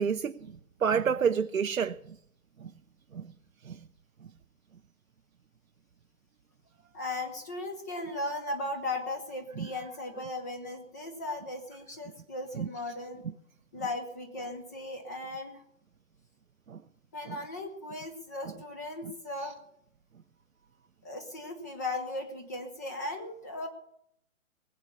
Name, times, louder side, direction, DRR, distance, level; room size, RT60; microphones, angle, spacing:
voice 1, 0.0-2.0 2.6-2.7 3.1-3.3 3.6-3.8 9.6-9.7 12.5-12.7 16.7-16.8 17.3-17.4 19.4-19.5, right 7 dB, 75° right, 0.7 m, -29 dB
voice 2, 6.9-13.2 13.7-15.6 17.1-19.6 21.0-23.7, left 2 dB, 15° left, 0.6 m, -37 dB
20.0 x 7.9 x 6.7 m
figure-of-eight pair, 130°, 41 cm